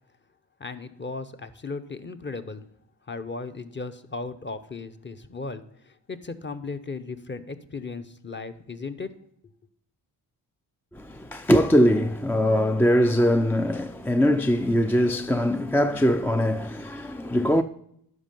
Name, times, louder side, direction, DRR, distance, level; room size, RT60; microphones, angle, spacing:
voice 1, 0.6-2.6 3.1-9.1, left 3 dB, 25° left, 0.8 m, -36 dB
voice 2, 11.0-17.6, equal, 5° left, 0.3 m, -22 dB
11.0 x 4.5 x 5.3 m
supercardioid pair, 50°, 42 cm